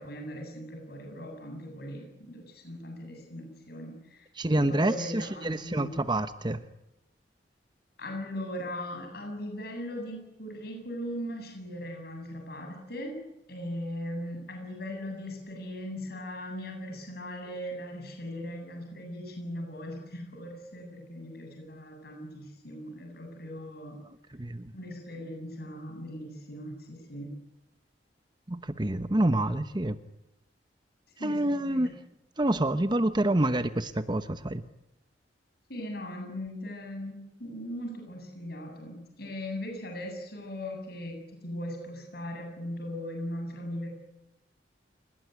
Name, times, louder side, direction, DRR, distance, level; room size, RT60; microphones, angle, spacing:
voice 1, 0.0-4.3 4.6-6.0 8.0-13.2 13.5-24.0 24.7-27.3 31.2-31.9 35.7-43.9, left 1 dB, 60° left, 7.9 m, -39 dB
voice 2, 4.4-6.6 24.3-24.7 28.5-30.0 31.2-31.9 32.4-34.6, right 1 dB, 25° right, 1.0 m, -27 dB
30.0 x 18.5 x 9.7 m
head